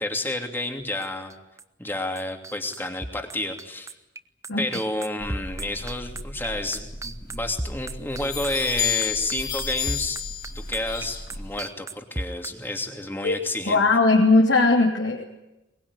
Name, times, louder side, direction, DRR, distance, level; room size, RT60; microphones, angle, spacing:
voice 1, 0.0-1.3 1.8-3.9 4.6-10.2 10.7-13.8, left 1 dB, 10° left, 4 dB, 2.8 m, -30 dB
sound 1, 1.0-1.9 2.2-12.5, right 2 dB, 15° right, 0.9 m, -34 dB
sound 2, 5.2-11.6, left 7 dB, 50° left, 5.2 m, -32 dB
voice 2, 13.7-15.2, left 3 dB, 75° left, 0 dB, 3.2 m, -18 dB
22.5 x 22.0 x 9.9 m, 0.97 s
head